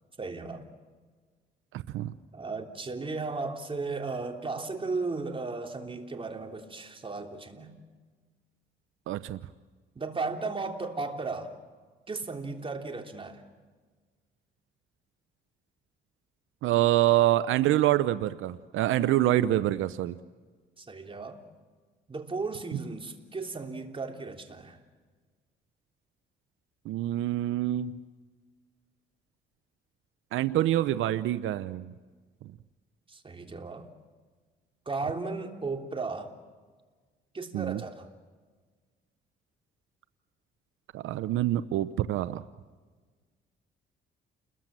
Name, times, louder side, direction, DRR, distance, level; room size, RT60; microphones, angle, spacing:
voice 1, 0.2-0.6 2.3-7.7 9.9-11.5 12.1-13.4 20.8-21.4 22.1-24.8 33.1-33.9 34.8-36.3 37.3-38.1, right 3 dB, 25° right, 4 dB, 3.3 m, -35 dB
voice 2, 9.1-9.4 16.6-20.1 26.9-28.0 30.3-31.9 37.5-37.8 40.9-42.4, right 14 dB, 85° right, 14 dB, 0.7 m, -26 dB
29.5 x 21.5 x 7.6 m, 1.4 s
cardioid pair, 90°, 20 cm